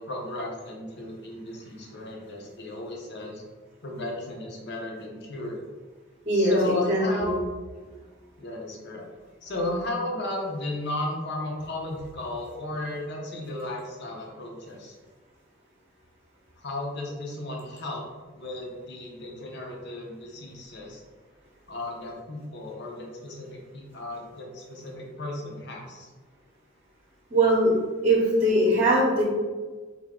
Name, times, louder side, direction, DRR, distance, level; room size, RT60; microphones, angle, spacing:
voice 1, 0.0-3.4 3.8-5.6 6.3-7.4 8.4-9.0 9.4-14.9 16.6-18.0 18.3-21.0 21.7-26.1, left 1 dB, 55° left, -1 dB, 0.8 m, -34 dB
voice 2, 6.3-7.3 27.3-27.8 28.0-29.2, right 1 dB, 30° right, -5 dB, 0.8 m, -21 dB
3.5 x 2.8 x 3.6 m, 1.4 s
head